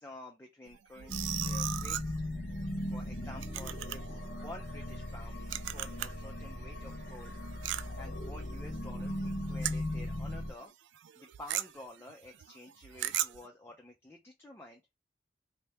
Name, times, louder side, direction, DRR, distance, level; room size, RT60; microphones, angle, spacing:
voice 1, 0.0-2.1 2.9-7.4 7.9-10.7 11.2-14.8, left 1 dB, 10° left, 0.4 m, -50 dB
sound 1, 0.7-6.3 6.6-10.2 10.5-10.7 10.9-13.5, right 13 dB, 75° right, 0.3 m, -39 dB
sound 2, 1.1-10.5, left 1 dB, 55° left, 0.7 m, -38 dB
3.3 x 2.7 x 3.3 m
head